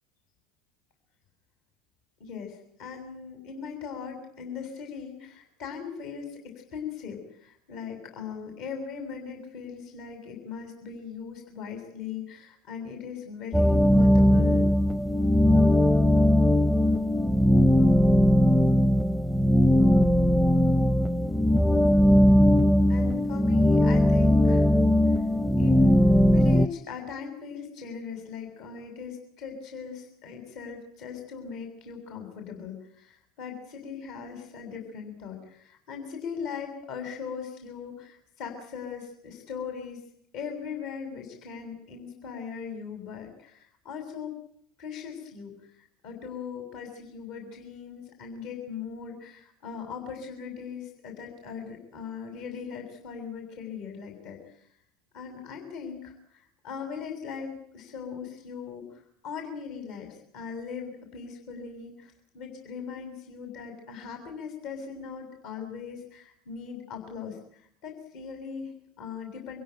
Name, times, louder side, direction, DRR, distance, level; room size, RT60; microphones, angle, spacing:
voice 1, 2.2-14.7 22.9-24.7 25.1-25.2 25.6-40.0 40.3-44.4 44.8-45.5 46.0-54.6 55.1-69.6, left 6 dB, 60° left, 4 dB, 7.1 m, -39 dB
sound 1, 13.5-26.7, left 1 dB, 5° left, 0.9 m, -20 dB
27.0 x 16.5 x 9.2 m, 0.70 s
hypercardioid pair, 75°, 0 cm